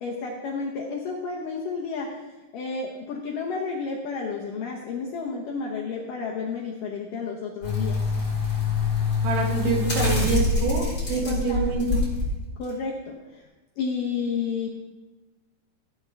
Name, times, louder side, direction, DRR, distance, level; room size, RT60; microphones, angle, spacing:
voice 1, 0.0-2.2 2.5-8.0 9.6-9.9 11.2-11.7 12.6-13.4 13.8-14.7, left 5 dB, 75° left, -2 dB, 2.0 m, -31 dB
sound 1, 7.6-12.3 12.7-12.8, left 4 dB, 15° left, 3.4 m, -25 dB
voice 2, 9.2-12.0, right 4 dB, 90° right, -1 dB, 4.4 m, -26 dB
15.5 x 8.6 x 3.4 m, 1.1 s
omnidirectional pair, 5.1 m